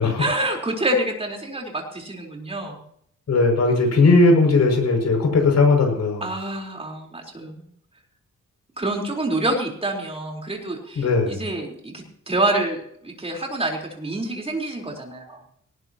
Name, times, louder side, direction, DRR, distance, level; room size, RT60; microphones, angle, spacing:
voice 1, 0.2-2.8 6.2-7.7 8.8-15.4, right 1 dB, 20° right, 0 dB, 4.2 m, -27 dB
voice 2, 3.3-6.2 11.0-11.4, left 3 dB, 60° left, 3 dB, 6.4 m, -18 dB
19.0 x 18.5 x 3.0 m, 0.67 s
wide cardioid pair, 135°, 30 cm